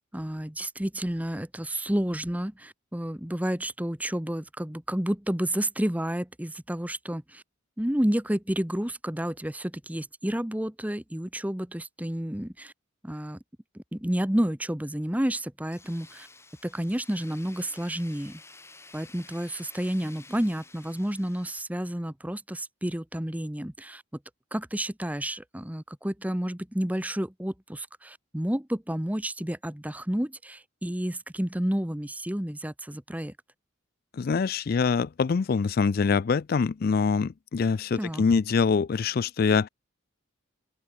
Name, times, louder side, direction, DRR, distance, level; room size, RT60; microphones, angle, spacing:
voice 1, 0.1-7.4 7.8-12.7 13.0-13.4 13.7-16.3 16.6-18.4 18.9-24.0 24.5-33.3 38.0-38.2, equal, 5° right, 0.9 m, -30 dB
Tools, 15.7-21.6, left 3 dB, 10° left, 6.2 m, -52 dB
voice 2, 34.2-39.7, left 5 dB, 45° left, 0.3 m, -24 dB
open air
head